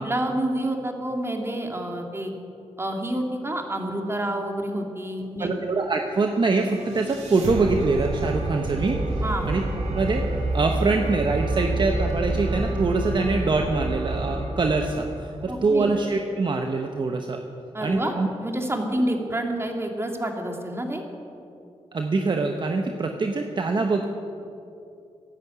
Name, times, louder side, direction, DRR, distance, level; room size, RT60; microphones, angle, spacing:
voice 1, 0.0-2.3 2.8-5.6 9.2-9.5 15.5-15.9 17.7-18.1 18.4-21.0, right 1 dB, 20° right, 2 dB, 2.4 m, -28 dB
voice 2, 5.4-9.0 9.4-9.6 9.9-17.4 17.8-18.3 21.9-24.1, right 3 dB, 45° right, 4 dB, 1.0 m, -24 dB
sound 1, 6.4-15.6, right 2 dB, 85° right, 2.4 m, -28 dB
14.5 x 11.0 x 8.1 m, 2.7 s
cardioid pair, 70°, 11 cm